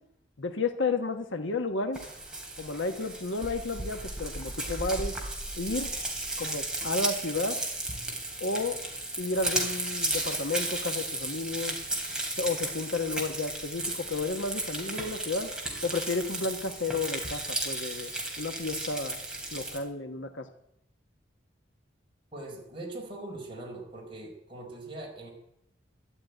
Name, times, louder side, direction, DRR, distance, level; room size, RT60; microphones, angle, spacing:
voice 1, 0.4-2.0 2.6-5.2 5.6-5.9 6.4-7.6 8.4-8.8 9.2-11.8 12.4-15.5 15.8-18.1 18.4-19.2 19.5-20.5, left 3 dB, 85° left, 7 dB, 1.4 m, -32 dB
Frying (food), 1.9-19.8, right 2 dB, 5° right, 3.1 m, -34 dB
voice 2, 22.3-25.3, right 2 dB, 25° right, -1 dB, 4.4 m, -41 dB
13.5 x 11.5 x 9.2 m, 0.78 s
head